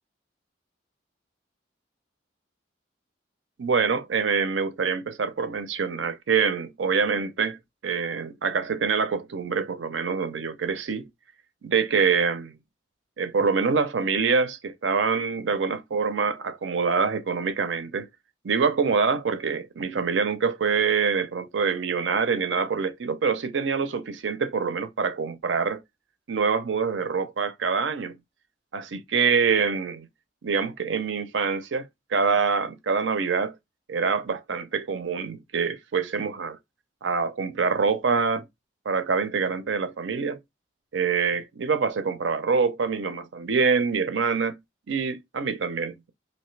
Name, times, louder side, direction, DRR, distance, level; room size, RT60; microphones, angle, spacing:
voice 1, 3.6-7.6 7.8-11.1 11.6-12.6 13.2-18.1 18.4-25.8 26.3-28.2 28.7-30.1 30.4-33.5 33.9-36.6 37.0-38.4 38.9-40.4 40.9-44.6 44.9-46.1, right 5 dB, 80° right, 0.5 m, -25 dB
3.2 x 2.7 x 3.1 m
head